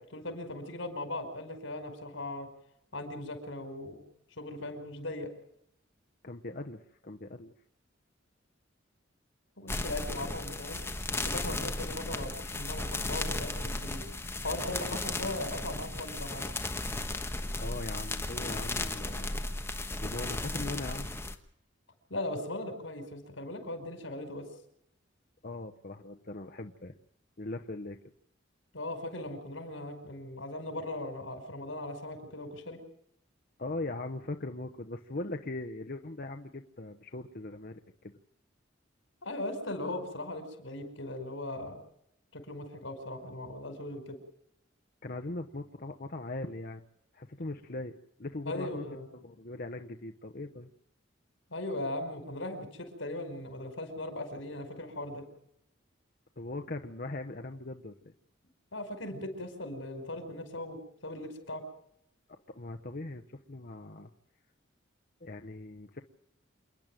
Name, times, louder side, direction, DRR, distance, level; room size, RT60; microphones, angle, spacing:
voice 1, 0.0-2.5 2.9-4.0 4.4-5.3 9.6-10.8 11.3-14.0 14.4-16.5 22.1-24.5 28.7-32.8 39.2-41.8 42.3-44.2 48.5-49.1 51.5-55.3 58.7-61.6, left 1 dB, 85° left, 6 dB, 5.2 m, -38 dB
voice 2, 6.2-7.5 17.6-19.4 20.0-21.1 25.4-27.0 27.4-28.0 33.6-37.8 45.0-46.8 47.1-48.8 49.1-50.7 56.4-58.1 62.5-64.1 65.2-66.0, left 2 dB, 50° left, 5 dB, 1.1 m, -40 dB
sound 1, 9.7-21.4, left 2 dB, 15° left, 1.4 m, -35 dB
28.0 x 10.5 x 9.1 m, 0.75 s
head